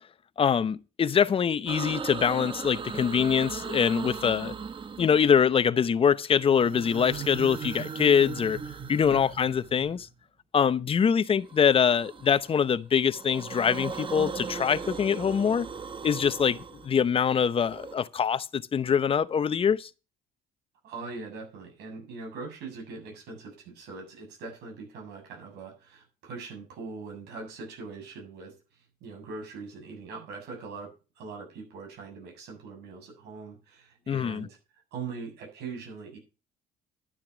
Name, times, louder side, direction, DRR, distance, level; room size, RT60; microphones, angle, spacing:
voice 1, 0.4-4.5 5.0-8.6 8.9-10.1 10.5-15.7 16.0-19.9 34.1-34.5, left 7 dB, 35° left, 0.7 m, -24 dB
sound 1, 1.7-5.6 6.4-10.1 11.5-12.6 13.0-18.0, right 6 dB, 30° right, 1.0 m, -38 dB
voice 2, 20.8-28.5 29.0-34.6 34.9-36.2, right 4 dB, 80° right, 7.5 m, -41 dB
11.5 x 7.4 x 6.0 m
cardioid pair, 110°, 17 cm